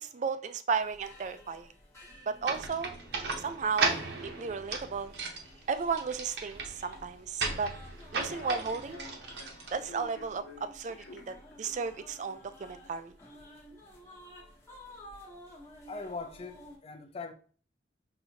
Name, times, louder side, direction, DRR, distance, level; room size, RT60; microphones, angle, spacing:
voice 1, 0.0-1.7 2.3-3.0 3.4-5.4 5.7-7.7 8.1-9.0 9.7-13.1, right 5 dB, 45° right, 0.3 m, -34 dB
sound 1, 0.7-16.8, left 1 dB, 15° left, 0.9 m, -54 dB
sound 2, 2.4-10.3, right 3 dB, 70° right, 0.8 m, -36 dB
Human voice / Subway metro underground, 7.4-12.9, left 3 dB, 85° left, 0.6 m, -53 dB
voice 2, 15.9-17.3, left 3 dB, 35° left, 0.4 m, -41 dB
5.6 x 2.7 x 2.7 m
head